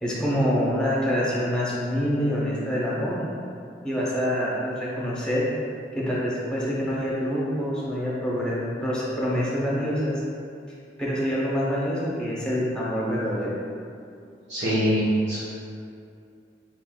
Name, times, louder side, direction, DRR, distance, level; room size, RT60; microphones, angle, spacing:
voice 1, 0.0-3.2 3.8-5.4 5.9-10.2 11.0-13.6, equal, 5° left, -7 dB, 0.8 m, -26 dB
voice 2, 14.5-15.4, equal, 80° right, -13 dB, 1.3 m, -23 dB
4.7 x 3.8 x 2.3 m, 2.4 s
head